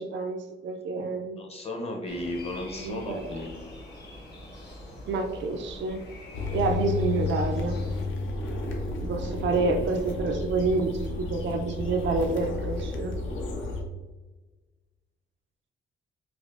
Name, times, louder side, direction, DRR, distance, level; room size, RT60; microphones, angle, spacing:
voice 1, 0.0-1.4 2.8-3.2 5.1-6.0 6.5-7.8 9.0-13.1, right 3 dB, 70° right, 5 dB, 0.4 m, -28 dB
voice 2, 0.9-3.6, left 1 dB, 30° left, 2 dB, 0.6 m, -35 dB
sound 1, 2.1-8.0, left 1 dB, 55° left, 1.0 m, -44 dB
sound 2, 6.3-13.8, left 3 dB, 75° left, 0.6 m, -32 dB
4.9 x 2.0 x 2.4 m, 1.2 s
cardioid pair, 110°, 20 cm